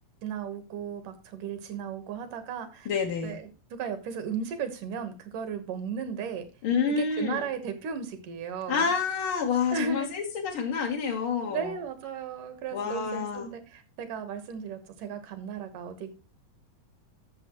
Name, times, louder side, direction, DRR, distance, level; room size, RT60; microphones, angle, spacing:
voice 1, 0.2-2.9 3.2-6.5 7.0-8.9 9.7-10.1 11.5-16.1, right 6 dB, 70° right, 9 dB, 2.7 m, -35 dB
voice 2, 2.8-3.4 6.6-7.4 8.7-11.7 12.7-13.5, left 6 dB, 65° left, 0 dB, 1.3 m, -28 dB
12.0 x 7.0 x 3.0 m, 0.32 s
omnidirectional pair, 4.1 m